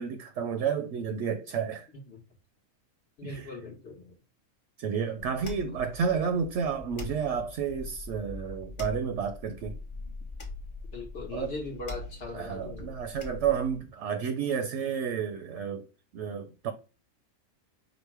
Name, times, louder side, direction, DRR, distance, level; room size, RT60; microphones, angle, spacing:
voice 1, 0.0-1.9 3.2-3.5 4.8-9.8 11.3-11.5 12.3-15.9 16.1-16.7, right 7 dB, 70° right, 0.8 m, -31 dB
voice 2, 3.2-4.1 10.9-12.9, left 2 dB, 55° left, 1.1 m, -39 dB
sound 1, 5.2-13.8, left 3 dB, 25° left, 0.9 m, -42 dB
5.0 x 2.1 x 4.5 m
omnidirectional pair, 1.4 m